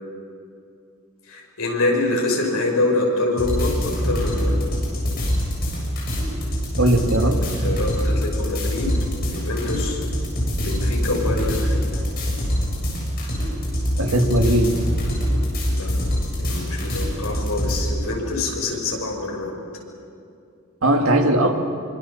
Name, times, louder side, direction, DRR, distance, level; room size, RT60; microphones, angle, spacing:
voice 1, 1.3-4.6 7.2-9.0 9.3-10.0 10.6-11.8 15.7-15.9 16.4-19.6, left 2 dB, 80° left, 0 dB, 5.9 m, -25 dB
sound 1, 3.4-17.8, equal, 45° left, 7.6 m, -24 dB
voice 2, 6.8-7.4 14.0-14.7 20.8-21.5, right 1 dB, 70° right, 3 dB, 2.3 m, -18 dB
25.0 x 25.0 x 7.2 m, 2.6 s
head